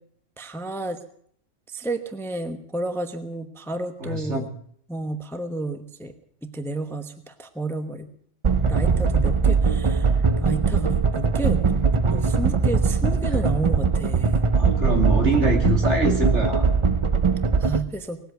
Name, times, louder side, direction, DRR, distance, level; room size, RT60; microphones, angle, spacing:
voice 1, 0.4-1.0 1.7-4.5 4.9-6.1 6.4-8.1 8.7-11.6 12.1-14.4 17.6-18.2, right 2 dB, ahead, 8 dB, 0.9 m, -31 dB
voice 2, 4.0-4.5 14.5-16.7, right 1 dB, 65° right, 2 dB, 3.0 m, -24 dB
sound 1, 8.4-17.8, right 5 dB, 35° right, 0.5 m, -21 dB
19.5 x 8.0 x 9.2 m, 0.65 s
omnidirectional pair, 1.3 m